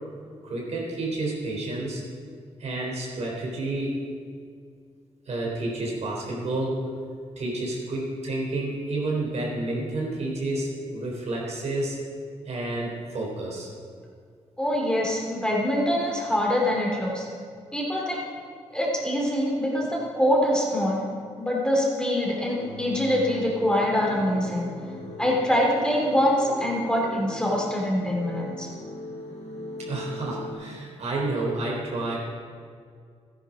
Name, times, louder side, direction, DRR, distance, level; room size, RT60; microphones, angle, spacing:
voice 1, 0.4-2.0 2.6-4.0 5.3-6.9 7.4-12.0 12.4-13.7 29.8-32.2, right 2 dB, 65° right, -3 dB, 3.6 m, -30 dB
voice 2, 14.6-17.2 17.7-18.2 18.7-21.0 21.4-24.7 25.2-28.7, equal, 5° left, -3 dB, 3.2 m, -24 dB
sound 1, 22.4-30.5, left 2 dB, 85° left, 3.2 m, -39 dB
13.0 x 10.0 x 5.1 m, 2.2 s
cardioid pair, 80°, 12 cm